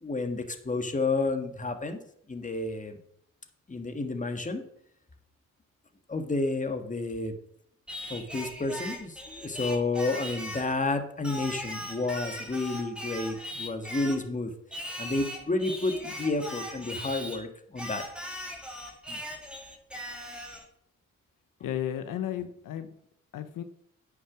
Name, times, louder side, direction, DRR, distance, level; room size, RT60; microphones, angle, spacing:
voice 1, 0.0-2.0 2.3-3.0 3.7-4.6 6.1-7.3 8.1-14.5 15.0-18.0 19.1-19.2, left 3 dB, 25° left, 6 dB, 1.7 m, -30 dB
Singing, 7.9-10.7 11.2-14.3 14.7-17.4 17.8-20.7, left 1 dB, 5° right, 2.4 m, -39 dB
voice 2, 21.6-22.9 23.3-23.6, left 11 dB, 75° left, 10 dB, 0.9 m, -33 dB
9.4 x 6.4 x 6.1 m, 0.70 s
cardioid pair, 75°, 32 cm